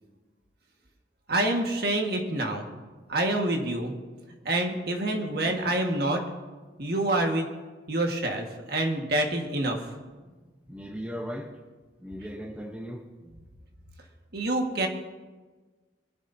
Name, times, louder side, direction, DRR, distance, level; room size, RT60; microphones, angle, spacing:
voice 1, 1.3-2.7 3.1-3.9 4.4-6.2 6.8-7.5 7.9-9.8 14.3-14.9, right 1 dB, 55° right, 2 dB, 1.6 m, -27 dB
voice 2, 10.7-11.5 12.0-13.4, equal, 5° right, 1 dB, 0.8 m, -38 dB
22.0 x 11.5 x 2.7 m, 1.3 s
head